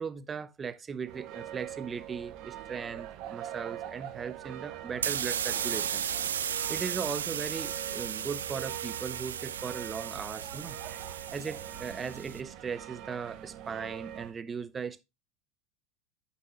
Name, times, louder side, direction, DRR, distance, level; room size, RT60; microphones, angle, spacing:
voice 1, 0.0-6.0 6.5-10.8 11.0-15.0, right 6 dB, 25° right, 0.7 m, -38 dB
sound 1, 1.0-14.3, right 11 dB, 55° right, 0.9 m, -43 dB
sound 2, 4.9-12.4, right 9 dB, 80° right, 0.4 m, -35 dB
8.3 x 7.2 x 2.4 m
hypercardioid pair, 80°, 0 cm